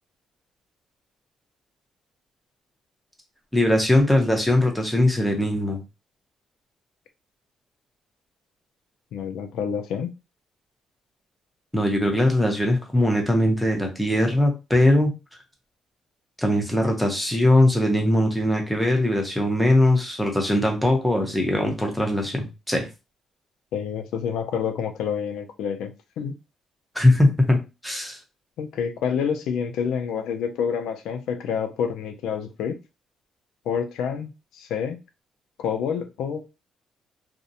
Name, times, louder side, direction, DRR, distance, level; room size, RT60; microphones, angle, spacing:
voice 1, 3.5-5.8 11.7-15.1 16.4-22.9 26.9-27.6 27.8-28.2, left 1 dB, ahead, 0.8 m, -20 dB
voice 2, 9.1-10.1 23.7-26.4 28.6-32.8 33.7-35.0 35.6-36.5, left 7 dB, 85° left, 0.3 m, -28 dB
2.4 x 2.0 x 2.7 m
cardioid pair, 90°, 0 cm